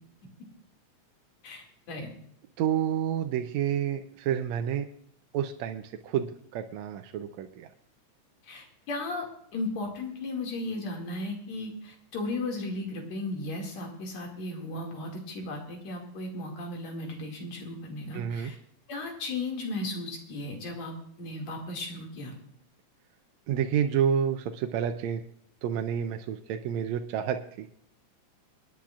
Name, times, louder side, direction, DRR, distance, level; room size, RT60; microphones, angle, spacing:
voice 1, 1.4-2.1 8.4-9.3 9.5-18.6 18.9-22.3, left 2 dB, 70° left, 1 dB, 3.5 m, -35 dB
voice 2, 2.6-4.9 5.3-7.7 18.1-18.5 23.5-25.2 25.6-27.7, right 9 dB, 80° right, 6 dB, 1.9 m, -29 dB
26.5 x 10.0 x 2.4 m, 0.69 s
omnidirectional pair, 3.3 m